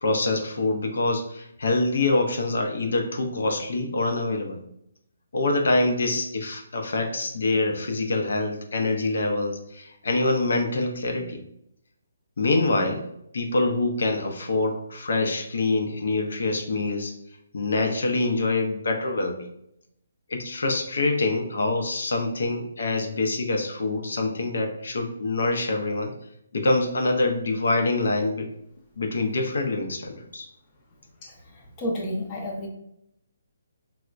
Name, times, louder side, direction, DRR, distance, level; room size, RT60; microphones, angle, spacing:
voice 1, 0.0-4.6 5.3-11.4 12.4-13.1 13.3-17.1 17.5-19.5 20.3-26.1 26.5-28.5 29.0-30.5, left 2 dB, 65° left, 4 dB, 0.5 m, -25 dB
voice 2, 31.2-32.7, left 1 dB, 20° left, -3 dB, 0.5 m, -31 dB
4.3 x 2.0 x 2.4 m, 0.77 s
hypercardioid pair, 175°, 0 cm